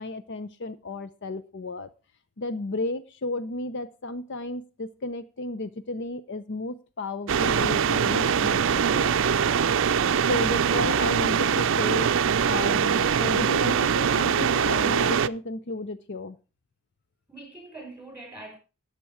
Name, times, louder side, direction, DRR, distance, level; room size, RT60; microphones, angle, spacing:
voice 1, 0.0-1.9 2.4-9.5 10.3-16.4, left 2 dB, 55° left, 0.6 m, -33 dB
sound 1, 7.3-15.3, right 7 dB, 65° right, 0.5 m, -23 dB
voice 2, 17.3-18.6, right 2 dB, 5° right, 5.6 m, -43 dB
12.5 x 8.3 x 4.8 m
head